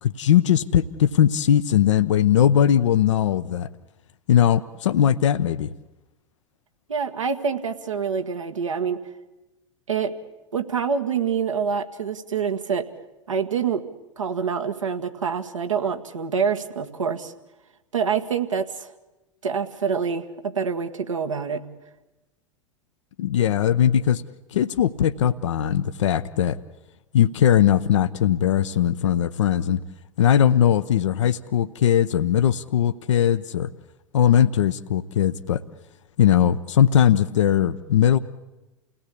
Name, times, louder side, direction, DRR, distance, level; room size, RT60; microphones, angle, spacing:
voice 1, 0.0-3.7 4.3-5.7 23.2-24.2 24.5-26.6 27.1-29.8 30.2-33.7 34.1-35.6 36.2-38.2, left 10 dB, 65° left, 11 dB, 0.8 m, -19 dB
voice 2, 6.9-9.0 9.9-10.1 10.5-12.9 13.3-13.8 14.2-17.3 17.9-18.9 19.4-21.6, right 6 dB, 75° right, 6 dB, 1.7 m, -26 dB
29.5 x 17.5 x 8.5 m, 1.1 s
figure-of-eight pair, 90°, 17 cm